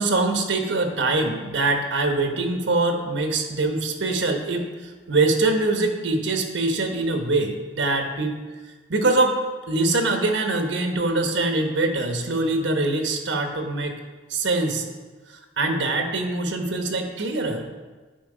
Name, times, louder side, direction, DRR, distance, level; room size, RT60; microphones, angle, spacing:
voice 1, 0.0-8.4 8.9-9.4 9.7-14.0 14.3-14.8 15.3-17.7, right 2 dB, 85° right, 4 dB, 1.1 m, -23 dB
10.5 x 4.7 x 4.9 m, 1.3 s
head